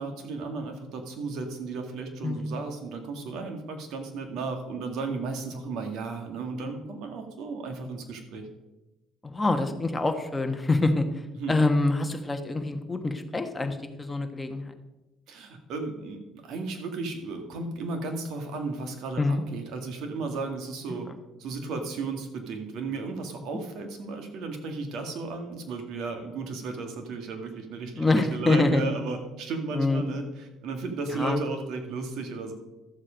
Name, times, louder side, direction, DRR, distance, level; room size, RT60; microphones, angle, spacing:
voice 1, 0.0-8.5 11.4-11.6 15.3-21.1 21.4-32.5, right 3 dB, 70° right, 5 dB, 2.0 m, -34 dB
voice 2, 2.2-2.6 9.2-14.7 19.2-19.4 20.9-21.0 28.0-28.8 29.7-30.0 31.1-31.4, left 2 dB, 15° left, 6 dB, 1.2 m, -26 dB
12.5 x 7.4 x 5.2 m, 1.0 s
cardioid pair, 115°, 0 cm